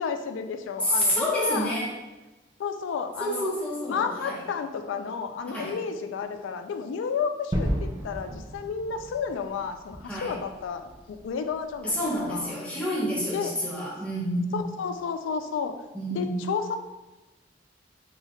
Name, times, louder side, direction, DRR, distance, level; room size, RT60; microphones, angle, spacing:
voice 1, 0.0-1.7 2.6-3.5 3.9-12.6 13.3-13.6 14.5-15.7 16.1-16.8, left 6 dB, 85° left, 9 dB, 0.3 m, -32 dB
voice 2, 0.8-1.9 3.2-4.4 5.5-5.7 10.0-10.3 11.8-14.7 15.9-16.5, equal, 5° left, -7 dB, 0.8 m, -28 dB
Gunshot gunfire / Fireworks / Boom, 7.5-12.3, equal, 20° right, 0.4 m, -34 dB
3.3 x 2.3 x 3.0 m, 1.1 s
head